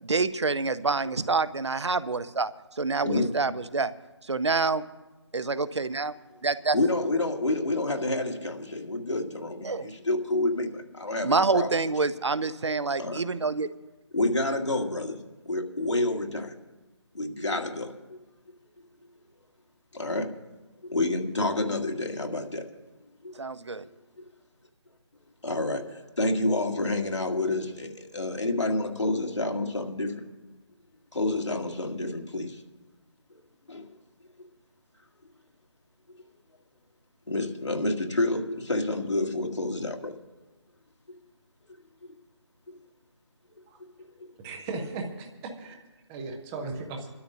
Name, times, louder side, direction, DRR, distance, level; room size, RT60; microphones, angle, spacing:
voice 1, 0.0-3.9 4.2-4.8 5.3-6.1 6.4-6.8 9.6-9.9 11.2-13.7 23.4-23.9, right 4 dB, 70° right, 14 dB, 0.8 m, -27 dB
voice 2, 6.7-11.7 13.0-13.2 14.1-16.6 17.1-18.2 19.9-20.4 20.8-22.7 23.2-23.3 24.2-24.3 25.4-30.2 31.1-32.6 33.3-33.4 33.7-33.9 37.3-40.2 41.7-42.1 44.2-44.3, left 2 dB, 75° left, 2 dB, 2.2 m, -29 dB
voice 3, 44.4-45.8 46.1-47.1, right 3 dB, 5° right, 4 dB, 0.4 m, -36 dB
27.0 x 12.5 x 2.6 m, 1.2 s
figure-of-eight pair, 155°, 15 cm